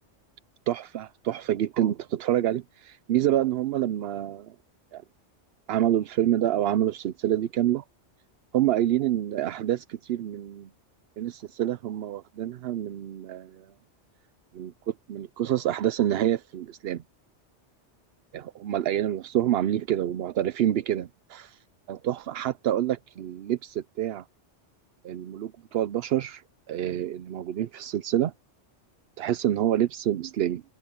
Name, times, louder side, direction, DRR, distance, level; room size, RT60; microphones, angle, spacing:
voice 1, 0.7-4.5 4.9-5.0 5.7-7.8 8.5-10.7 11.2-13.7 14.5-17.0 18.3-21.6 21.9-24.2 25.0-28.3 29.2-30.6, right 12 dB, 65° right, 0.8 m, -27 dB
omnidirectional pair, 1.2 m